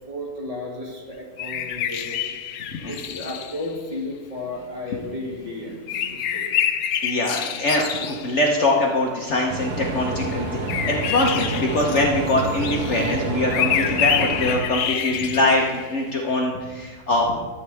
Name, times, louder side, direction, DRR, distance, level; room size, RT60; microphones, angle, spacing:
voice 1, 0.1-6.5, left 2 dB, 20° right, -4 dB, 2.1 m, -34 dB
sound 1, 1.4-3.7 5.9-8.4 10.5-16.0, left 9 dB, 80° left, 1.2 m, -27 dB
voice 2, 2.7-3.3 7.0-10.6 10.9-17.4, left 1 dB, 50° left, 0 dB, 1.1 m, -23 dB
sound 2, 9.5-14.6, right 2 dB, 60° right, 1.6 m, -28 dB
12.5 x 8.0 x 3.4 m, 1.4 s
omnidirectional pair, 1.7 m